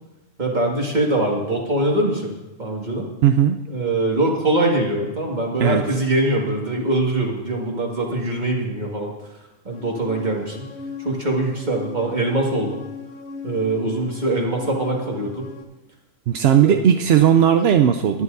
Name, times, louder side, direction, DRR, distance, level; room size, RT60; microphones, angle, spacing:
voice 1, 0.4-2.3 2.6-3.1 3.7-9.1 9.7-10.7 11.0-12.8 13.4-15.5 16.6-16.8, right 2 dB, 30° right, -1 dB, 2.1 m, -23 dB
voice 2, 3.2-3.6 5.6-5.8 16.3-18.2, right 9 dB, 65° right, 6 dB, 0.6 m, -16 dB
sound 1, 9.7-15.6, left 5 dB, 50° left, 1.1 m, -38 dB
20.5 x 10.0 x 2.7 m, 1.1 s
omnidirectional pair, 1.5 m